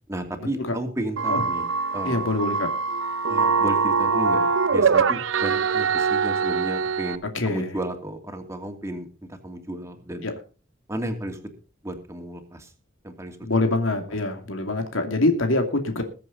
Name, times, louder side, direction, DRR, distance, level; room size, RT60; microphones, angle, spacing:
voice 1, 0.1-2.3 3.3-10.3 10.9-11.4 11.8-12.7 13.0-13.4 13.6-13.8, right 1 dB, 15° right, 4 dB, 2.6 m, -33 dB
sound 1, 1.2-7.2, right 5 dB, 75° right, 0.8 m, -23 dB
voice 2, 2.0-2.7 7.3-7.7 10.2-10.3 13.4-16.0, left 2 dB, 85° left, 5 dB, 2.5 m, -24 dB
21.5 x 7.8 x 4.0 m, 0.34 s
head